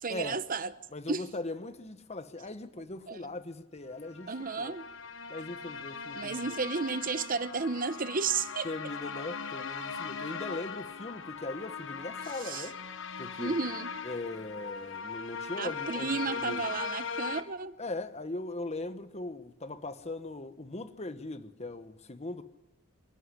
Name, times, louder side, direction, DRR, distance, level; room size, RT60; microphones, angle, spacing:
voice 1, 0.0-0.7 1.1-1.2 3.1-3.3 4.3-4.8 6.1-8.7 12.4-12.7 13.4-13.9 15.6-17.8, right 4 dB, 40° right, 0.9 m, -33 dB
voice 2, 0.9-4.8 5.3-6.6 8.6-12.8 13.2-13.5 14.0-16.6 17.8-22.4, left 2 dB, 30° left, 1.1 m, -39 dB
sound 1, 4.0-17.4, left 5 dB, 65° left, 1.3 m, -39 dB
26.5 x 12.5 x 9.9 m
head